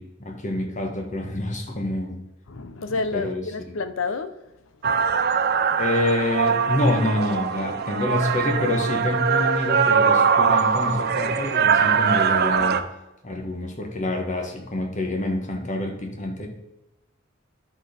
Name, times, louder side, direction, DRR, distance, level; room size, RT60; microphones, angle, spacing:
voice 1, 0.0-2.2 3.1-3.4 5.8-12.8 13.2-16.5, left 1 dB, 40° left, 1.4 m, -26 dB
voice 2, 2.5-5.0 5.4-5.5, left 4 dB, 80° left, 0.7 m, -30 dB
sound 1, 4.8-12.8, right 6 dB, 50° right, 0.5 m, -22 dB
10.5 x 4.4 x 5.1 m
head